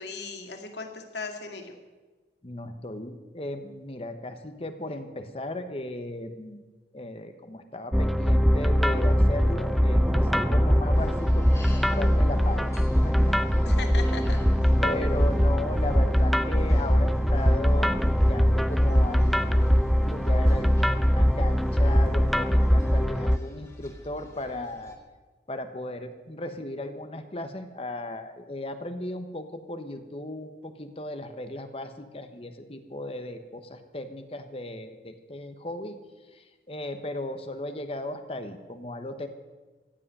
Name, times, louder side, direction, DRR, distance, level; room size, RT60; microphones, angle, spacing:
voice 1, 0.0-1.7 13.7-14.4, left 4 dB, 80° left, 4 dB, 2.2 m, -37 dB
voice 2, 2.4-6.7 6.9-12.8 13.0-13.4 14.8-17.9 18.3-19.7 20.0-25.0 25.5-39.3, left 1 dB, 35° left, 8 dB, 1.1 m, -36 dB
sound 1, 7.9-23.4, equal, ahead, 0.4 m, -22 dB
sound 2, 8.9-23.1, right 1 dB, 15° right, 0.8 m, -39 dB
sound 3, 10.9-25.0, left 1 dB, 15° left, 2.3 m, -49 dB
15.0 x 8.5 x 9.9 m, 1.3 s
head